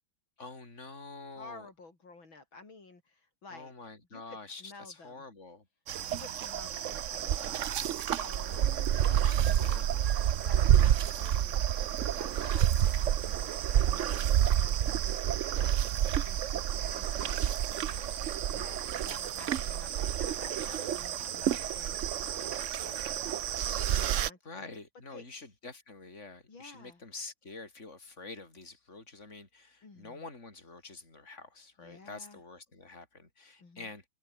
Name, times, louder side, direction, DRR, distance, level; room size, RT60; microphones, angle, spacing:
voice 1, 0.4-1.7 3.5-5.6 8.5-10.1 24.4-34.1, left 3 dB, 35° left, 5.1 m, -47 dB
voice 2, 1.4-3.7 4.1-5.2 6.1-8.6 9.3-10.0 10.4-11.7 12.2-15.3 15.5-15.8 16.1-18.1 18.5-23.1 23.6-24.6 25.1-25.3 26.5-27.0 29.8-30.3 31.8-32.4 33.6-33.9, left 3 dB, 70° left, 5.2 m, -52 dB
sound 1, 5.9-24.3, right 10 dB, 65° right, 0.7 m, -29 dB
omnidirectional pair, 2.2 m